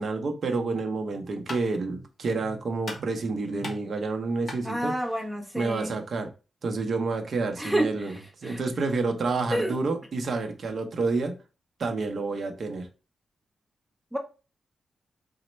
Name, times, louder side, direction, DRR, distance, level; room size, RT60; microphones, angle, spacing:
voice 1, 0.0-4.9 5.6-6.3 6.6-11.3 11.8-12.9, right 3 dB, 55° right, 5 dB, 0.6 m, -29 dB
sound 1, 1.0-6.3, left 2 dB, 45° left, 0.9 m, -44 dB
voice 2, 4.6-5.9 7.6-8.6 9.5-9.7 14.1-14.2, right 1 dB, 5° right, 2 dB, 0.7 m, -29 dB
4.0 x 2.1 x 3.0 m, 0.33 s
wide cardioid pair, 115°, 0 cm